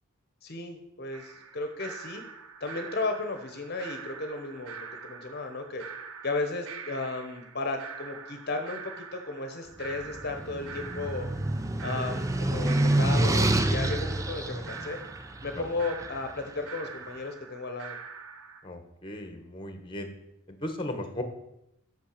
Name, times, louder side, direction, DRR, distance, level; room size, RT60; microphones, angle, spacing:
voice 1, 0.4-2.2 2.6-5.8 6.2-11.3 11.8-15.0 15.4-18.0, left 3 dB, 50° left, 6 dB, 1.0 m, -34 dB
sound 1, 1.1-18.6, right 5 dB, 80° right, 0.9 m, -44 dB
sound 2, 9.9-16.2, right 1 dB, 15° right, 0.6 m, -27 dB
voice 2, 18.6-20.1 20.5-21.2, left 1 dB, 25° left, 7 dB, 1.2 m, -36 dB
8.7 x 6.4 x 6.6 m, 0.82 s
head